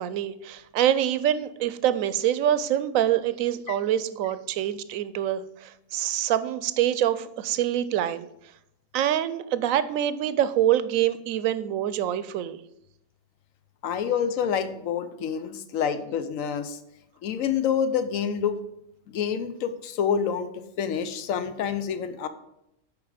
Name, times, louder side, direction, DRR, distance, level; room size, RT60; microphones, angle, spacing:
voice 1, 0.0-8.3 8.9-12.6, right 11 dB, 85° right, 14 dB, 1.0 m, -25 dB
voice 2, 13.8-16.8 17.2-18.6 19.1-20.5 20.8-22.3, left 7 dB, 80° left, 11 dB, 1.1 m, -27 dB
8.7 x 4.9 x 4.9 m, 0.83 s
omnidirectional pair, 1.4 m